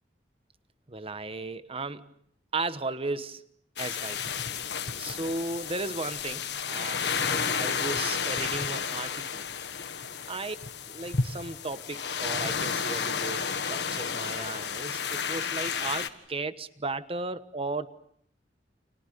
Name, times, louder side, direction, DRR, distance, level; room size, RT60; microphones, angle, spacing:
voice 1, 0.9-2.1 2.5-3.4 3.8-9.4 10.3-10.6 10.9-17.9, right 3 dB, 35° right, 1.2 m, -35 dB
sound 1, 3.8-16.1, left 6 dB, 70° left, 1.6 m, -32 dB
29.5 x 28.5 x 6.8 m
head